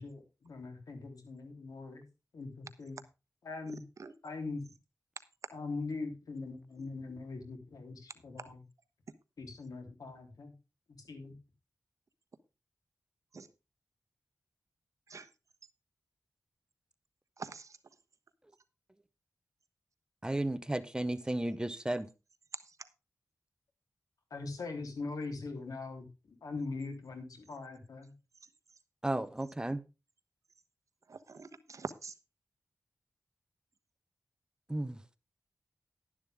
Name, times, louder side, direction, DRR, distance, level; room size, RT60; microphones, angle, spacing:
voice 1, 0.0-2.0 2.3-3.0 3.4-3.8 4.2-4.7 5.5-8.6 9.4-10.5 10.9-11.4 24.3-28.1, left 3 dB, 85° left, 3.4 m, -42 dB
voice 2, 17.4-17.8 22.5-22.6 31.1-32.1, right 4 dB, 60° right, 1.2 m, -44 dB
voice 3, 20.2-22.1 29.0-29.8 34.7-35.0, right 1 dB, 15° right, 0.9 m, -33 dB
11.5 x 11.0 x 3.5 m
wide cardioid pair, 95°, 6 cm